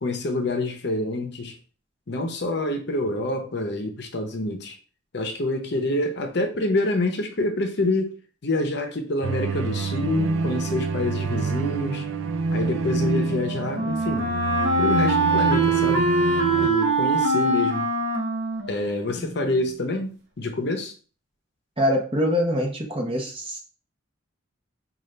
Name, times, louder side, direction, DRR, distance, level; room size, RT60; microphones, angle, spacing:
voice 1, 0.0-1.6 2.1-4.8 5.1-8.1 8.4-12.1 12.5-14.3 14.8-16.1 16.6-17.9 18.7-20.9, left 2 dB, 55° left, 0.7 m, -27 dB
sound 1, 9.2-16.7, right 4 dB, 75° right, 0.4 m, -27 dB
Wind instrument woodwind instrument, 12.8-19.7, right 2 dB, 55° right, 1.0 m, -24 dB
voice 2, 21.8-23.6, equal, 25° right, 0.9 m, -24 dB
5.1 x 2.4 x 3.2 m
head